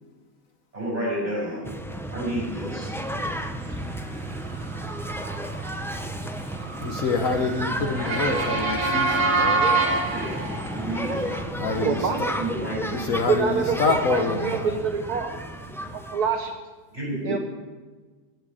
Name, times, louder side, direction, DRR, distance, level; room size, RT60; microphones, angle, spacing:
voice 1, 0.7-1.7 2.1-2.9 3.3-3.5 10.0-11.6 12.4-12.9 16.9-17.4, right 1 dB, 25° right, -3 dB, 6.4 m, -31 dB
sound 1, 1.6-16.6, equal, ahead, 0.5 m, -32 dB
Motor vehicle (road) / Siren, 4.2-11.4, right 3 dB, 50° right, 2.4 m, -27 dB
voice 2, 6.8-9.7 11.5-12.1 12.9-14.8, left 4 dB, 55° left, 5 dB, 1.4 m, -26 dB
voice 3, 11.7-12.4 13.0-15.4 15.9-16.5 17.2-17.4, right 6 dB, 70° right, 4 dB, 1.4 m, -26 dB
16.0 x 7.6 x 10.0 m, 1.3 s
omnidirectional pair, 1.8 m